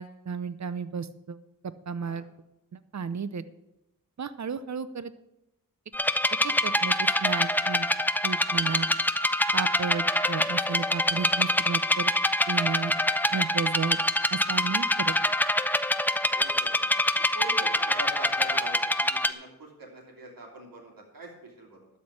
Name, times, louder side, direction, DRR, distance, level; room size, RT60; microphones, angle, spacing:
voice 1, 0.0-2.2 2.7-3.4 4.2-5.1 6.4-7.9 8.2-8.9 9.5-12.2 12.5-12.9 13.3-14.0 14.3-15.2, right 5 dB, 55° right, 14 dB, 0.7 m, -33 dB
sound 1, 5.9-19.3, left 1 dB, 5° left, 0.5 m, -25 dB
voice 2, 16.3-16.9 17.1-21.9, right 1 dB, 80° right, -1 dB, 3.0 m, -43 dB
12.5 x 4.5 x 8.4 m, 0.89 s
wide cardioid pair, 60°, 34 cm